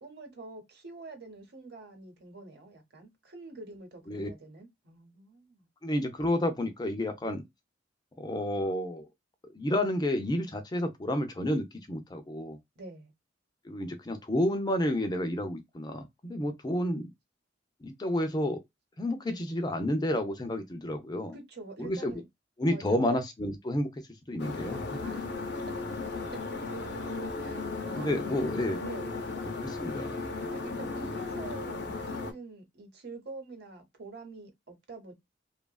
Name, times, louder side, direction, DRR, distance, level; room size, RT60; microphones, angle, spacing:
voice 1, 0.0-5.7 12.8-13.1 21.3-22.3 22.7-23.1 25.0-25.3 27.4-27.6 27.9-28.4 28.8-29.1 30.5-35.1, right 3 dB, 60° right, 1.0 m, -46 dB
voice 2, 5.8-7.4 8.2-9.1 9.5-12.6 13.7-17.1 17.8-18.6 19.0-21.3 21.8-22.1 22.6-23.9 24.3-25.0 27.9-28.8 29.6-30.1, left 1 dB, 20° left, 0.5 m, -30 dB
sound 1, 24.4-32.3, left 3 dB, 60° left, 0.6 m, -36 dB
2.8 x 2.4 x 2.2 m
head